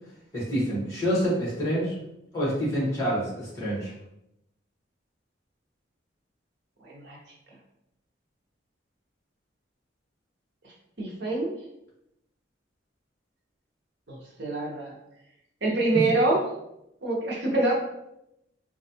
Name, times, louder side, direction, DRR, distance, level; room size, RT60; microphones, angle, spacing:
voice 1, 0.3-1.9 2.3-3.9, equal, 15° left, -6 dB, 1.3 m, -27 dB
voice 2, 6.8-7.2 11.0-11.5 14.1-14.9 15.6-16.4 17.0-17.7, right 2 dB, 65° right, -2 dB, 0.8 m, -25 dB
4.1 x 2.3 x 2.8 m, 0.82 s
head